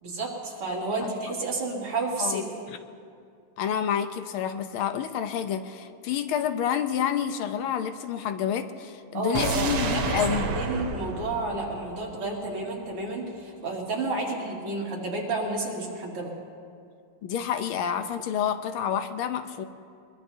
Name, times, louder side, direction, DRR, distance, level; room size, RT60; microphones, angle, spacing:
voice 1, 0.0-2.5 9.1-16.3, right 2 dB, 90° right, -3 dB, 3.3 m, -31 dB
voice 2, 3.6-10.6 17.2-19.6, left 8 dB, 80° left, 9 dB, 1.5 m, -28 dB
sound 1, 9.3-12.5 12.8-12.9, right 4 dB, 65° right, 1.7 m, -30 dB
22.0 x 22.0 x 2.8 m, 2.3 s
omnidirectional pair, 2.4 m